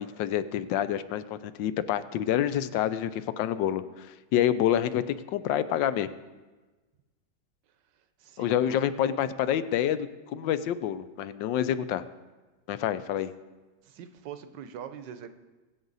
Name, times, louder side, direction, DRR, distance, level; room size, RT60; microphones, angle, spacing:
voice 1, 0.0-6.1 8.4-12.0 12.7-13.3, left 10 dB, 80° left, 13 dB, 1.3 m, -28 dB
voice 2, 8.2-8.8 9.0-9.3 13.8-15.3, right 8 dB, 75° right, 10 dB, 1.4 m, -43 dB
20.5 x 7.9 x 4.0 m, 1.2 s
omnidirectional pair, 2.0 m